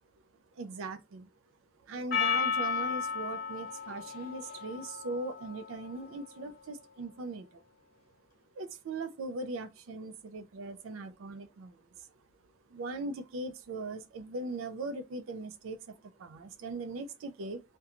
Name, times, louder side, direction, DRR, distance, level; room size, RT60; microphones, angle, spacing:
voice 1, 0.5-1.3 1.8-7.6 8.6-12.1 12.7-17.6, right 2 dB, 75° right, 0.4 m, -40 dB
Percussion, 2.1-6.7, left 6 dB, 45° left, 0.7 m, -34 dB
2.4 x 2.2 x 2.8 m
head